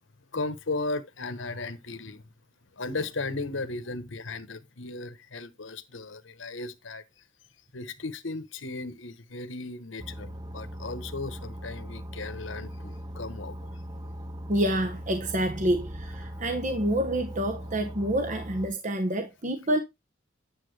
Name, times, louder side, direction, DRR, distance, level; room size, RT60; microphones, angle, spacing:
voice 1, 0.3-2.2 2.8-7.0 7.7-13.6, left 3 dB, 70° left, 1.2 m, -36 dB
sound 1, 10.0-18.7, equal, 20° right, 0.7 m, -39 dB
voice 2, 14.5-19.8, right 1 dB, 40° right, 1.0 m, -27 dB
10.0 x 7.3 x 3.3 m
head